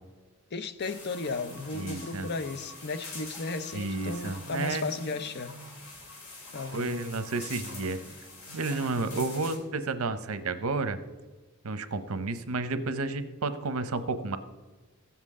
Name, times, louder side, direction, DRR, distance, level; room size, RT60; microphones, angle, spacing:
voice 1, 0.5-5.6 6.5-7.0, left 3 dB, 50° left, 0.6 m, -35 dB
sound 1, 0.8-9.6, left 2 dB, 75° left, 2.6 m, -44 dB
voice 2, 1.7-2.3 3.7-4.9 6.7-8.0 8.5-11.0 11.6-14.4, right 3 dB, 85° right, 0.8 m, -31 dB
15.5 x 7.4 x 3.7 m
head